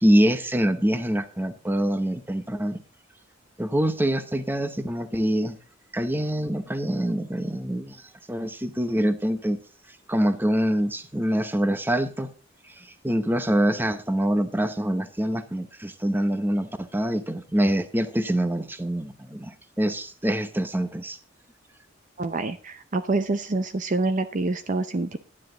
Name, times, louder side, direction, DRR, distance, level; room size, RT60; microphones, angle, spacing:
voice 1, 0.0-2.8 3.6-5.6 5.9-8.0 8.3-9.6 10.1-12.3 12.7-21.2, equal, 10° right, 11 dB, 0.9 m, -25 dB
voice 2, 22.2-25.2, right 2 dB, 40° right, 10 dB, 0.6 m, -26 dB
10.0 x 9.9 x 3.9 m, 0.35 s
head